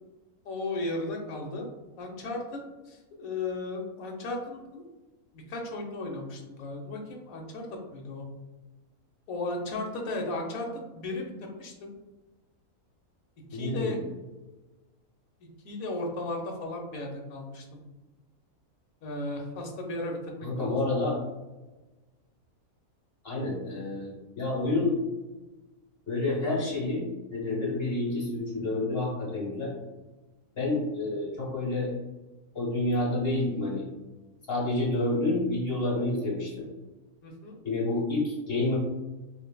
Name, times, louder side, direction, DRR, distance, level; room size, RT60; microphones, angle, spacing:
voice 1, 0.4-1.7 2.0-4.8 5.3-8.3 9.3-11.9 13.5-14.0 15.6-17.8 19.0-20.8 37.2-37.6, left 2 dB, 70° left, 1 dB, 1.2 m, -35 dB
voice 2, 13.5-14.0 20.4-21.2 23.2-25.0 26.1-27.1 27.3-29.7 30.5-31.9 32.5-33.9 34.5-36.7 37.6-38.8, left 2 dB, 40° left, -5 dB, 1.5 m, -29 dB
6.1 x 2.5 x 2.2 m, 1.1 s
omnidirectional pair, 1.6 m